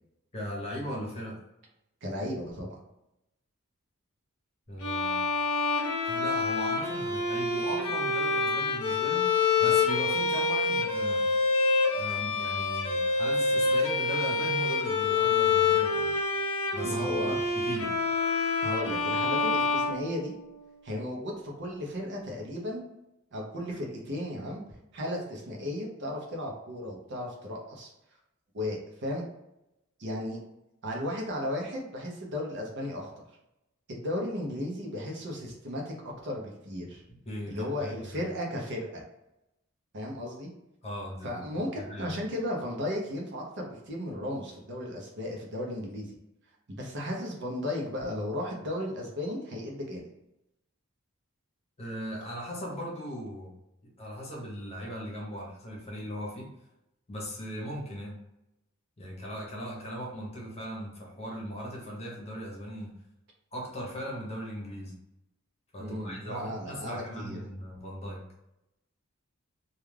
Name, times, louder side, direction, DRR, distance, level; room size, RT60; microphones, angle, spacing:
voice 1, 0.3-1.4 4.7-5.2 6.0-9.3 9.6-11.3 11.9-16.1 16.7-17.9 37.1-38.2 40.8-41.4 41.8-42.2 51.8-53.5 54.0-56.5 57.1-58.2 59.0-62.9 63.5-64.9 65.7-68.2, equal, 30° left, -3 dB, 0.8 m, -38 dB
voice 2, 2.0-2.8 16.8-17.4 18.6-20.3 20.8-22.8 23.3-24.6 24.9-27.9 28.5-29.2 30.0-30.4 30.8-33.1 33.9-37.0 37.5-39.0 39.9-40.5 41.2-46.2 46.7-50.0 65.8-67.4, left 1 dB, 55° right, 0 dB, 0.7 m, -35 dB
Bowed string instrument, 4.8-20.7, left 4 dB, 90° left, 0.6 m, -27 dB
2.3 x 2.3 x 3.2 m, 0.87 s
head